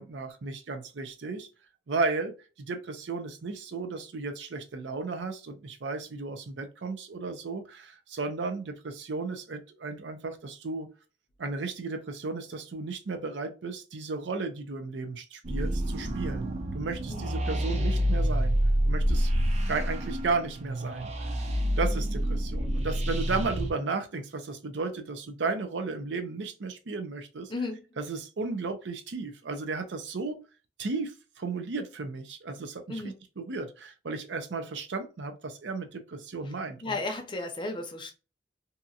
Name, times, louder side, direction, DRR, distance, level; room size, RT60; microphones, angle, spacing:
voice 1, 0.0-1.5 1.9-10.9 11.4-16.5 16.7-18.6 18.8-19.3 19.7-21.1 21.8-27.5 28.0-30.5 30.8-33.0 33.4-37.0, right 3 dB, 85° right, 0.6 m, -34 dB
sound 1, 15.4-23.7, equal, 40° right, 0.5 m, -28 dB
voice 2, 27.5-27.8 32.9-33.1 36.8-38.1, left 2 dB, 25° left, 0.6 m, -34 dB
2.8 x 2.4 x 2.6 m
head